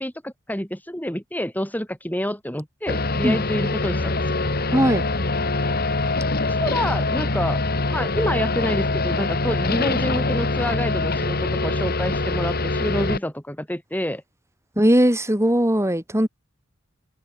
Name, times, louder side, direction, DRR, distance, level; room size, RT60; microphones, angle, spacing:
voice 1, 0.0-4.4 6.4-7.6 7.9-14.2, left 1 dB, 10° left, 6.7 m, -28 dB
sound 1, 2.9-13.2, left 2 dB, 50° left, 2.3 m, -24 dB
voice 2, 4.7-5.0 14.8-16.3, equal, 15° right, 6.2 m, -19 dB
open air
head